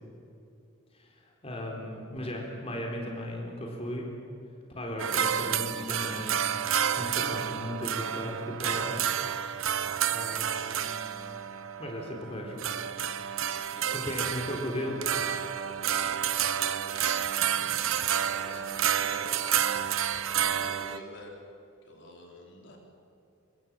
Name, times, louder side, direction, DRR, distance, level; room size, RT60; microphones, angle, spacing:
voice 1, 0.9-4.1 4.8-6.4 7.0-9.0 10.1-11.0 11.8-12.6 13.6-15.0 17.5-17.8, equal, 30° left, 0 dB, 3.9 m, -36 dB
sound 1, 5.0-21.0, right 9 dB, 75° right, 1.0 m, -30 dB
voice 2, 13.4-14.6 16.2-17.0 18.2-19.4 20.1-21.4 21.8-22.8, left 1 dB, 60° left, 0 dB, 4.2 m, -48 dB
26.5 x 22.5 x 7.6 m, 2.8 s
head